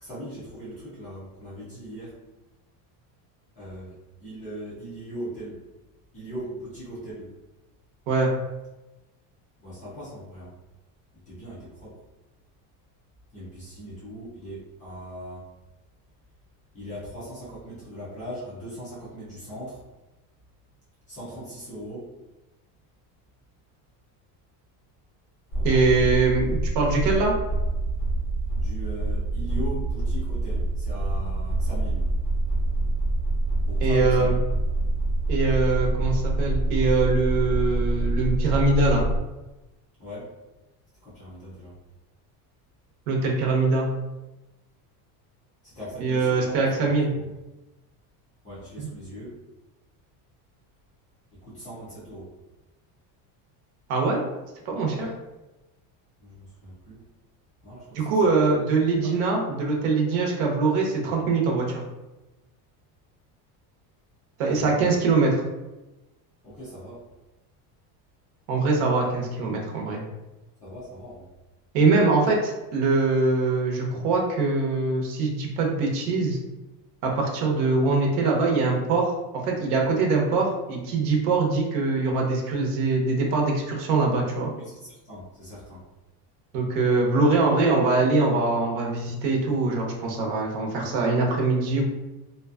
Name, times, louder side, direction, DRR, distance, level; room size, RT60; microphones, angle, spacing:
voice 1, 0.0-2.2 3.6-3.9 4.2-5.6 6.1-7.3 9.6-10.5 11.3-12.0 13.3-15.4 16.7-19.8 21.1-22.1 25.5-25.9 28.5-32.1 33.7-34.4 40.0-40.3 41.0-41.7 45.6-46.6 47.1-47.2 48.4-49.3 51.4-52.3 54.9-55.1 56.2-57.0 57.6-58.4 59.0-59.2 64.5-64.9 66.4-67.0 70.6-71.3 84.6-84.8 85.0-85.9, equal, 20° left, -10 dB, 0.3 m, -39 dB
sound 1, 25.5-39.2, right 2 dB, 35° left, 1.0 m, -26 dB
voice 2, 25.6-27.3 33.8-34.3 35.3-39.0 43.1-43.9 46.0-47.1 48.8-48.9 53.9-54.2 54.6-55.1 57.9-61.8 64.4-65.4 68.5-70.0 71.7-76.4 77.0-79.2 79.4-84.5 86.5-91.8, right 3 dB, 80° right, 0 dB, 0.8 m, -23 dB
2.5 x 2.2 x 2.3 m, 1.0 s
cardioid pair, 165°, 47 cm